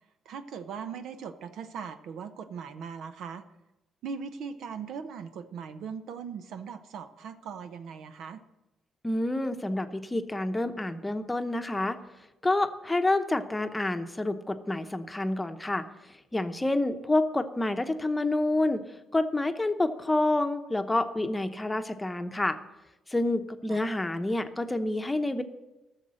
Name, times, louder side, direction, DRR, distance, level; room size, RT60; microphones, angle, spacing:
voice 1, 0.3-3.4 4.0-8.4 23.7-23.8, right 6 dB, 75° right, 10 dB, 0.8 m, -39 dB
voice 2, 9.0-12.0 12.4-15.8 16.3-18.8 19.1-22.6 23.1-25.4, left 2 dB, 15° left, 8 dB, 0.9 m, -28 dB
13.5 x 6.7 x 7.6 m, 1.0 s
cardioid pair, 90°, 0 cm